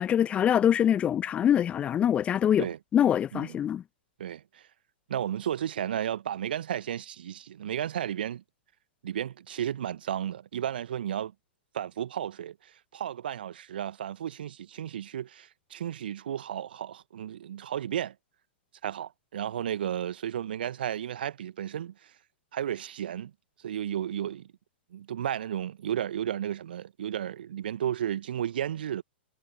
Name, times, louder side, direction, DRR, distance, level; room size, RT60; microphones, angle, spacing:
voice 1, 0.0-2.7 2.9-3.8, left 9 dB, 20° left, 1.1 m, -24 dB
voice 2, 4.2-4.7 5.1-8.4 9.0-11.3 11.7-18.1 18.8-22.1 22.5-23.3 23.6-24.5 24.9-29.0, right 10 dB, 60° right, 1.4 m, -33 dB
figure-of-eight pair, 110°, 6 cm